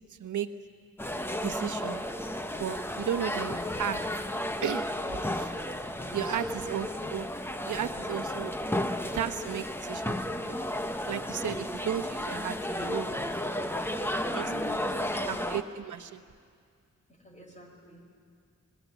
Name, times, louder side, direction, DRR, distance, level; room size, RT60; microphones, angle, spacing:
voice 1, 0.1-0.5 1.4-2.0 2.6-4.1 4.6-5.5 6.1-7.3 7.6-8.5 9.1-10.6 11.0-13.2 14.1-14.5 15.3-16.2, right 9 dB, 80° right, 9 dB, 1.0 m, -34 dB
sound 1, 1.0-15.6, left 1 dB, 10° left, 0.8 m, -33 dB
voice 2, 6.2-6.7 14.3-14.7 14.9-15.5 17.1-18.1, left 1 dB, 25° left, 2 dB, 4.1 m, -49 dB
26.5 x 20.5 x 8.1 m, 2.2 s
wide cardioid pair, 175°, 30 cm